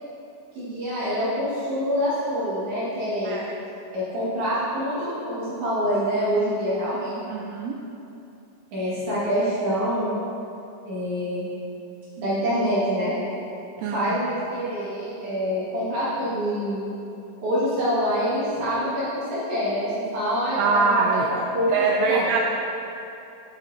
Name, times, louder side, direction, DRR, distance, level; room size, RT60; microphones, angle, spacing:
voice 1, 0.5-3.4 3.9-7.2 8.7-10.1 10.9-11.5 12.2-13.1 13.9-16.9 17.4-21.7 22.0-22.3, equal, 55° right, -10 dB, 2.4 m, -26 dB
voice 2, 7.3-7.8 13.8-14.1 20.6-21.3 21.7-22.4, right 4 dB, 85° right, 1 dB, 2.3 m, -23 dB
9.1 x 6.1 x 3.9 m, 2.8 s
omnidirectional pair, 5.1 m